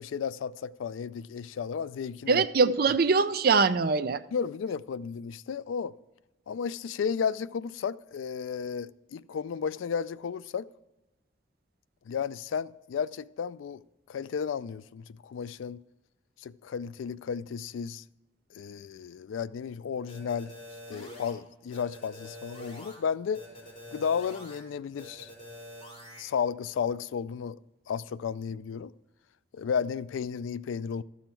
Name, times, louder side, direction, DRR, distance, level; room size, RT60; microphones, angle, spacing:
voice 1, 0.0-2.5 4.3-5.9 6.5-10.7 12.1-13.8 14.1-15.8 16.4-18.0 18.5-20.5 20.9-23.4 23.9-25.3 26.2-27.6 27.9-28.9 29.5-31.0, left 6 dB, 90° left, 0.3 m, -33 dB
voice 2, 2.3-4.2, right 4 dB, 50° right, 0.5 m, -23 dB
sound 1, 20.1-21.3 21.7-22.9 23.3-24.6 25.0-26.2, left 1 dB, 35° left, 3.8 m, -45 dB
12.5 x 7.1 x 4.5 m
head